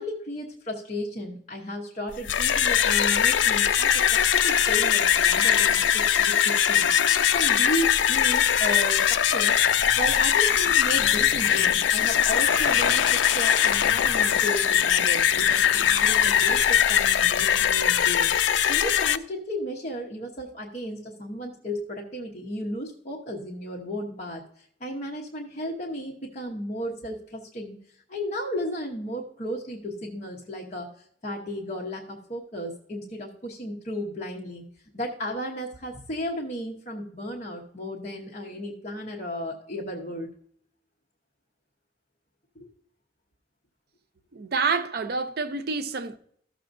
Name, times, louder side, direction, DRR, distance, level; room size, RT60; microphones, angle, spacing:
voice 1, 0.0-9.6 9.9-18.3 18.7-27.8 28.1-30.9 31.2-34.6 34.9-40.3 42.6-42.7, equal, 40° left, 1.0 m, -34 dB
sound 1, 2.1-19.2, left 9 dB, 80° left, 0.4 m, -21 dB
voice 2, 44.3-46.2, right 4 dB, 60° right, 0.6 m, -28 dB
13.5 x 6.6 x 2.6 m
head